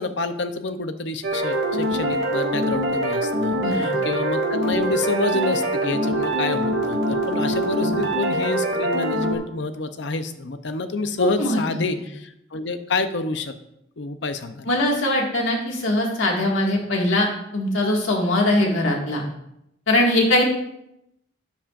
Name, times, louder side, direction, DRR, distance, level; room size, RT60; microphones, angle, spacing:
voice 1, 0.0-13.5 14.0-14.7, left 3 dB, 60° left, 10 dB, 0.6 m, -28 dB
sound 1, 1.2-9.4, right 1 dB, 65° right, 1.8 m, -24 dB
voice 2, 3.6-4.0 7.8-7.9 11.2-11.8 14.7-17.3 17.5-19.2 19.9-20.4, left 1 dB, 80° left, 0 dB, 1.9 m, -21 dB
12.5 x 7.3 x 2.5 m, 0.80 s
head